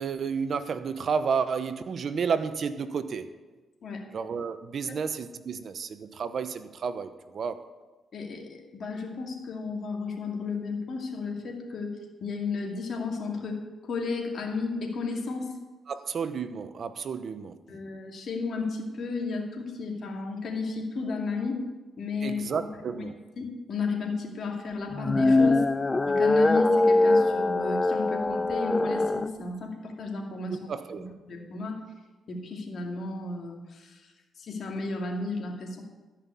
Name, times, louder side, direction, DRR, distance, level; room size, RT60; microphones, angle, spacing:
voice 1, 0.0-3.3 4.1-7.6 15.9-17.6 22.2-23.2 30.5-31.1, right 6 dB, 60° right, 12 dB, 0.8 m, -31 dB
voice 2, 8.1-15.5 17.7-21.6 22.0-22.6 23.4-25.6 26.0-30.6 31.0-31.8 32.3-34.1 34.4-35.8, left 4 dB, 60° left, 1 dB, 2.3 m, -33 dB
sound 1, 24.9-29.3, left 2 dB, 25° left, 0.5 m, -23 dB
13.5 x 5.8 x 8.3 m, 1.2 s
cardioid pair, 80°, 0 cm